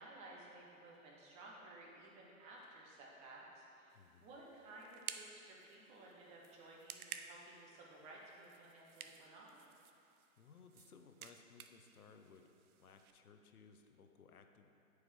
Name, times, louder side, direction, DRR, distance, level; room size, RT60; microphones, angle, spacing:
voice 1, 0.0-9.6, right 2 dB, 15° right, -3 dB, 0.6 m, -56 dB
voice 2, 3.9-4.3 10.0-12.5 12.8-14.7, left 5 dB, 90° left, 6 dB, 0.7 m, -62 dB
sound 1, 3.9-13.1, right 8 dB, 80° right, 0.6 m, -55 dB
8.3 x 4.7 x 3.5 m, 2.7 s
hypercardioid pair, 135°, 43 cm